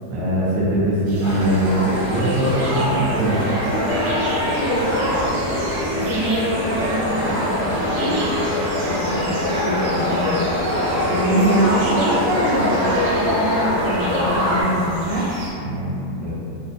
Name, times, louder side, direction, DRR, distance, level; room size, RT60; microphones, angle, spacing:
voice 1, 0.1-3.4 15.6-15.9 16.2-16.3, right 1 dB, 85° right, -7 dB, 1.5 m, -21 dB
sound 1, 1.1-15.5, right 1 dB, 70° right, 1.1 m, -33 dB
sound 2, 1.2-14.6, left 1 dB, 55° right, 1.3 m, -23 dB
Musical instrument, 3.2-14.8, right 1 dB, 35° right, 0.4 m, -32 dB
voice 2, 4.4-5.1 5.9-10.4 11.1-15.3, right 1 dB, 70° left, -9 dB, 0.8 m, -24 dB
3.6 x 2.2 x 2.6 m, 2.8 s
omnidirectional pair, 2.0 m